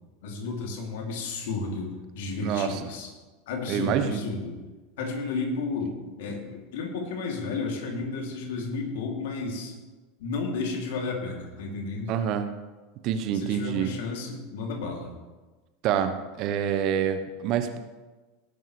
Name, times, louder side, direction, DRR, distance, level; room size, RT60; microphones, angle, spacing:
voice 1, 0.2-3.1 3.5-4.6 5.0-9.7 10.2-12.1 13.3-15.1, left 3 dB, 65° left, 1 dB, 2.9 m, -32 dB
voice 2, 2.4-2.9 3.7-4.3 12.1-12.5 13.0-13.9 15.8-16.1 16.4-17.8, right 9 dB, 45° right, 9 dB, 1.1 m, -26 dB
18.5 x 10.5 x 3.3 m, 1.3 s
figure-of-eight pair, 80°, 0 cm